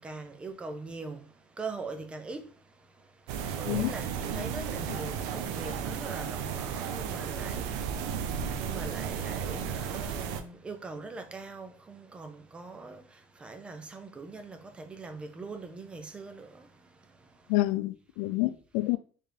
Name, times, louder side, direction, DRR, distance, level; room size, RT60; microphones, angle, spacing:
voice 1, 0.0-17.5, right 3 dB, 15° right, 0.5 m, -42 dB
sound 1, 3.3-10.4, right 7 dB, 80° right, 0.6 m, -34 dB
voice 2, 17.5-19.0, left 18 dB, 85° left, 0.4 m, -28 dB
4.6 x 3.4 x 3.3 m
cardioid pair, 160°, 7 cm